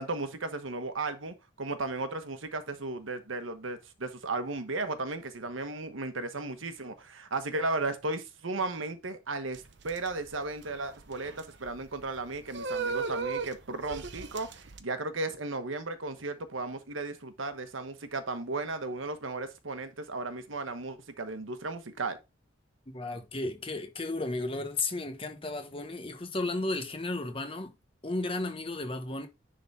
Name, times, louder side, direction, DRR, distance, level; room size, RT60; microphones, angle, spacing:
voice 1, 0.0-22.2, right 3 dB, 90° right, 1.2 m, -35 dB
sound 1, 9.5-14.8, right 4 dB, 60° right, 0.8 m, -37 dB
voice 2, 22.9-27.7 28.0-29.3, left 2 dB, 30° left, 1.2 m, -34 dB
10.0 x 3.9 x 4.2 m
head